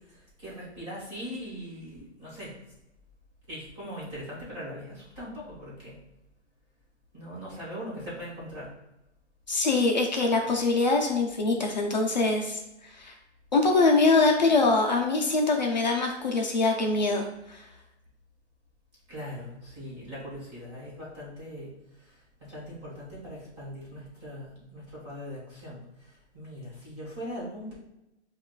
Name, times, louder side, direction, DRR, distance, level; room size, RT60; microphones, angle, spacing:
voice 1, 0.1-2.5 3.5-6.0 7.1-8.7 19.1-21.7 22.0-27.7, equal, 25° right, -7 dB, 1.4 m, -40 dB
voice 2, 9.5-12.6 12.9-13.2 13.5-17.6, left 3 dB, 40° left, 1 dB, 0.4 m, -24 dB
7.1 x 2.4 x 2.2 m, 0.90 s
hypercardioid pair, 175°, 35 cm